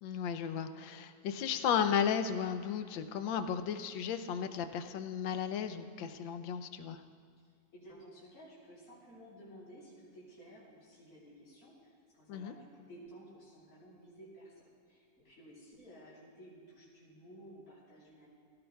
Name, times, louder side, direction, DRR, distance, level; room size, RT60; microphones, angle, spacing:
voice 1, 0.0-7.0 12.3-12.5, left 8 dB, 75° left, 9 dB, 1.3 m, -34 dB
voice 2, 7.4-18.3, equal, 45° left, -8 dB, 4.0 m, -55 dB
17.0 x 16.0 x 2.3 m, 2.2 s
omnidirectional pair, 2.2 m